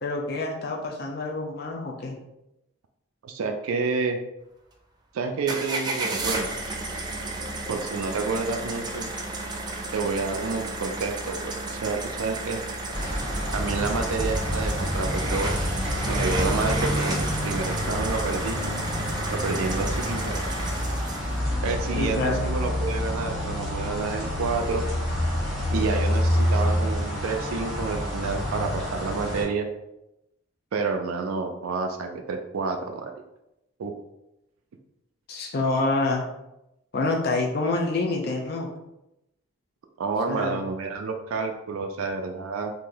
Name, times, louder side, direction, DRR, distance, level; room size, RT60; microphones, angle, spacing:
voice 1, 0.0-2.2 22.0-22.4 35.3-36.2 36.9-38.7 40.3-40.6, left 2 dB, 50° left, 1 dB, 0.5 m, -27 dB
voice 2, 3.2-4.2 5.1-6.5 7.7-9.1 9.9-12.6 13.5-15.6 16.1-18.6 19.3-20.4 21.6-24.9 25.7-29.7 30.7-33.1 33.8-33.9 40.0-42.7, right 4 dB, 85° right, 4 dB, 0.4 m, -29 dB
sound 1, 5.5-21.4, right 2 dB, 20° right, 0.3 m, -32 dB
sound 2, 12.9-29.4, equal, ahead, 1.0 m, -28 dB
2.9 x 2.6 x 3.8 m, 0.88 s
head